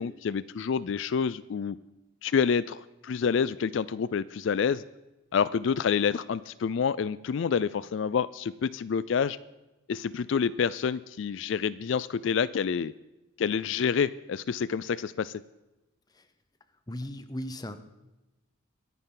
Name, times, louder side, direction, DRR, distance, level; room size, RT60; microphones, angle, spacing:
voice 1, 0.0-1.8 2.2-4.8 5.3-9.4 9.9-12.9 13.4-15.4, left 6 dB, 65° left, 16 dB, 0.3 m, -28 dB
voice 2, 16.9-17.8, left 1 dB, 20° left, 10 dB, 0.8 m, -37 dB
23.5 x 9.9 x 3.9 m, 1.0 s
head